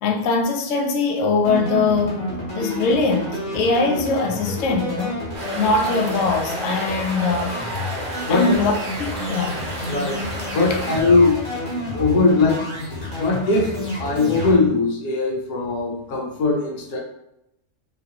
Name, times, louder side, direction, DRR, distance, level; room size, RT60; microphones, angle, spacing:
voice 1, 0.0-2.2 2.5-5.2 5.6-7.6 8.3-8.7 9.0-9.6 10.7-10.8, left 4 dB, 65° left, 2 dB, 0.8 m, -21 dB
sound 1, 1.4-14.5, left 1 dB, 50° left, 1.3 m, -30 dB
sound 2, 5.3-11.0, right 1 dB, 55° right, 0.4 m, -32 dB
voice 2, 8.2-8.6 9.9-10.2 10.5-11.4 11.9-17.0, left 3 dB, 90° left, -1 dB, 1.3 m, -20 dB
3.1 x 2.5 x 2.8 m, 0.83 s
omnidirectional pair, 1.6 m